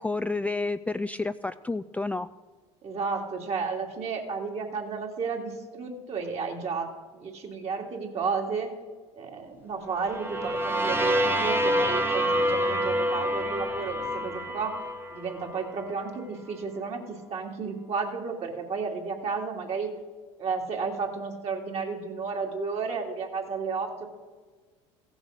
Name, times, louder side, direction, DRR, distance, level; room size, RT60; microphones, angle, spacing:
voice 1, 0.0-2.3, left 3 dB, 10° left, 11 dB, 0.3 m, -30 dB
voice 2, 2.8-8.7 9.2-14.8 15.1-19.9 20.4-24.1, right 5 dB, 45° right, 1 dB, 2.7 m, -32 dB
sound 1, 10.0-15.9, equal, 15° right, 1.1 m, -27 dB
15.5 x 7.2 x 6.6 m, 1.4 s
hypercardioid pair, 80°, 15 cm